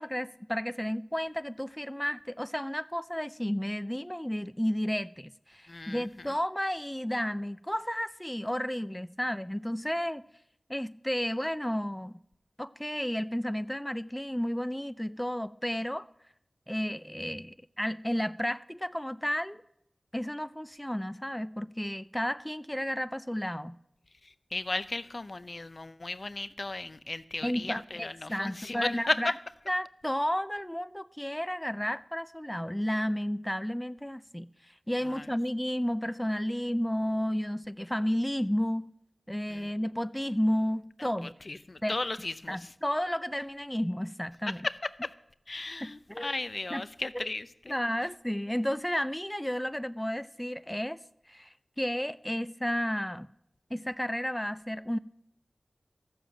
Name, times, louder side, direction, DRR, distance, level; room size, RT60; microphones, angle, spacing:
voice 1, 0.0-10.2 10.7-12.2 12.6-16.1 16.7-19.6 20.1-23.7 27.4-29.4 29.7-34.5 34.9-38.9 39.3-41.3 41.8-42.0 42.5-44.7 45.8-46.3 46.7-46.9 47.1-47.3 47.7-51.0 51.3-53.3 53.7-55.0, equal, 10° left, 0.4 m, -32 dB
voice 2, 5.7-6.0 24.5-29.2 35.1-35.2 39.5-39.7 41.5-42.6 44.6-44.7 45.0-45.1 45.5-47.7, left 2 dB, 60° left, 0.6 m, -35 dB
13.5 x 7.1 x 7.6 m
cardioid pair, 40°, 0 cm